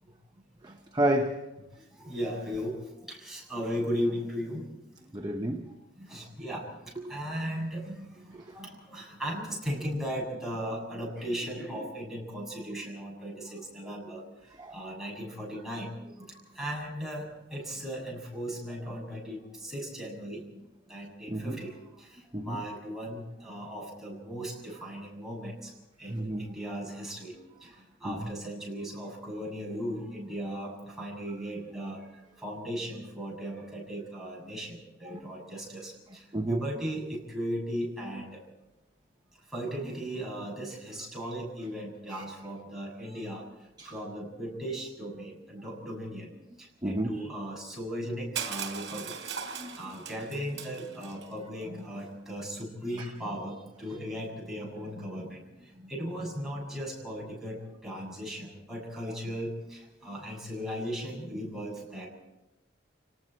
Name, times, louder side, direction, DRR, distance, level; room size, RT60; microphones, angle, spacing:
voice 1, 0.6-1.4 5.1-5.7 6.2-6.3 8.3-8.4 14.6-14.8 21.3-21.6 22.3-22.6 26.1-26.5 28.0-28.3 36.3-36.6 42.1-42.2 43.8-43.9 46.8-47.2 49.6-50.0 53.0-53.1, right 1 dB, 20° right, 1.0 m, -31 dB
voice 2, 1.8-4.7 5.2-5.3 6.0-14.2 14.7-20.6 20.9-25.7 26.0-38.4 39.5-46.3 46.6-49.2 49.8-62.1, equal, ahead, 7.4 m, -37 dB
Crushing, 48.4-51.3, right 7 dB, 70° right, 3.6 m, -38 dB
30.0 x 19.5 x 4.5 m
head